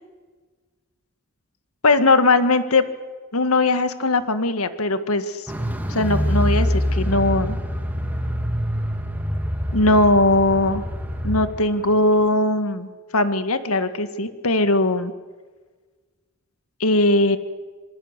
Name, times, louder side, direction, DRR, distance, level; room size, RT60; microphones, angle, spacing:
voice 1, 1.8-2.8 3.3-5.5 5.9-7.6 9.7-10.8 11.2-15.1 16.8-17.4, left 2 dB, 85° left, 9 dB, 1.9 m, -19 dB
Car, 5.5-11.7 11.9-12.0, equal, 10° right, 2.4 m, -25 dB
26.0 x 25.5 x 8.3 m, 1.4 s
head